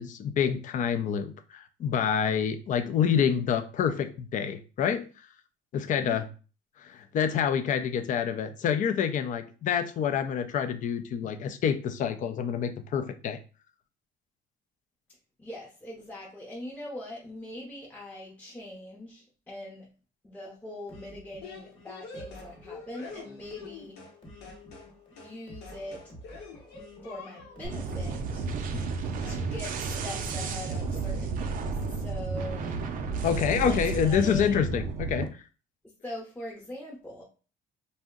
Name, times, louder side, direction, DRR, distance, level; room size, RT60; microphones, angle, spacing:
voice 1, 0.0-5.3 5.7-6.3 6.8-13.4 28.7-28.8 33.2-35.3, left 8 dB, 50° left, 8 dB, 0.5 m, -27 dB
voice 2, 5.7-6.2 15.4-19.9 20.2-24.0 25.2-26.1 27.0-28.4 29.3-32.7 33.6-34.6 36.0-37.2, left 1 dB, 10° left, -5 dB, 0.7 m, -42 dB
sound 1, 20.9-32.0 32.6-34.1, left 1 dB, 30° left, 1.1 m, -51 dB
sound 2, 21.4-24.2 24.4-24.9 25.2-25.4 25.6-27.7 28.8-29.0 29.2-29.7 30.0-30.2 30.4-30.9, left 4 dB, 85° left, 0.9 m, -46 dB
sound 3, 27.6-35.3, right 4 dB, 55° right, 0.5 m, -32 dB
2.6 x 2.1 x 3.6 m, 0.35 s
cardioid pair, 110°, 17 cm